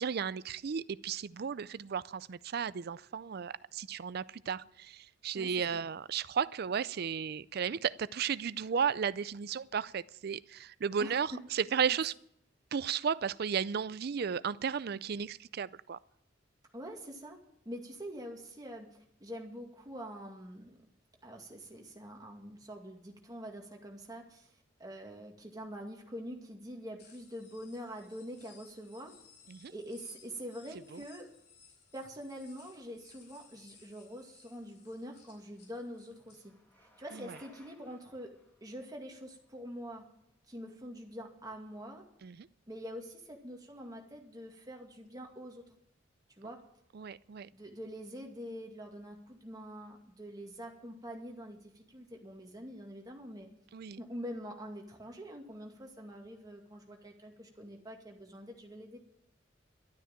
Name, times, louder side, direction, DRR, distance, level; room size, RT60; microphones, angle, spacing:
voice 1, 0.0-12.1 12.7-16.0 29.5-29.7 30.9-31.0 37.1-37.4 42.2-42.5 46.9-47.5 53.7-54.0, right 7 dB, 55° right, 19 dB, 0.4 m, -34 dB
voice 2, 11.0-11.4 16.7-17.4 17.7-20.8 21.2-24.5 24.8-29.1 29.7-31.3 31.9-36.5 36.8-38.3 38.6-40.1 40.5-42.0 42.7-45.6 46.4-46.6 47.5-53.5 54.0-59.0, equal, 20° right, 1 dB, 2.2 m, -45 dB
sound 1, 27.0-36.4, left 6 dB, 65° left, 4.7 m, -61 dB
Bicycle, 34.8-40.7, left 1 dB, 10° left, 2.7 m, -63 dB
12.5 x 9.4 x 9.0 m, 0.73 s
head